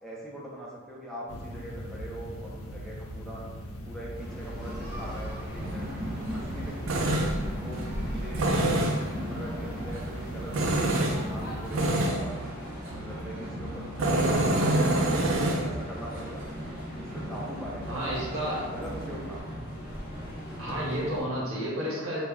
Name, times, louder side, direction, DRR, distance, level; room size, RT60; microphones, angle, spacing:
voice 1, 0.0-3.4 3.9-7.0 7.6-8.6 8.9-12.5 12.9-16.4 17.0-19.4, right 1 dB, ahead, -5 dB, 0.5 m, -42 dB
sound 1, 1.3-11.9, equal, 90° left, 0.4 m, -40 dB
sound 2, 4.1-21.2, equal, 45° left, 0.7 m, -38 dB
Tools, 5.3-19.4, right 1 dB, 70° right, 0.4 m, -30 dB
voice 2, 17.9-18.6 20.6-22.2, equal, 85° right, -6 dB, 0.8 m, -31 dB
2.2 x 2.0 x 3.5 m, 1.3 s
head